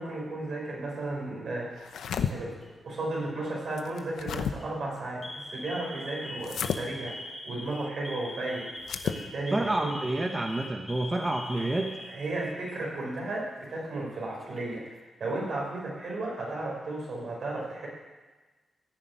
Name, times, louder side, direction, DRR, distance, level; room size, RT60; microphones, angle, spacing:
voice 1, 0.0-2.6 2.8-8.7 9.0-10.0 11.6-11.7 12.1-17.9, right 2 dB, 70° right, -2 dB, 5.2 m, -34 dB
sound 1, 1.8-2.3 3.8-4.5 6.4-6.8 8.8-9.2, left 7 dB, 85° left, 0.8 m, -31 dB
Alarm, 2.3-2.8 3.7-4.0 4.5-4.6 5.2-12.8 13.1-13.2 14.1-14.8, left 1 dB, 20° left, 3.0 m, -43 dB
voice 2, 9.5-11.9, right 2 dB, 25° right, 3 dB, 1.3 m, -28 dB
15.0 x 6.6 x 9.1 m, 1.3 s
cardioid pair, 60°, 0 cm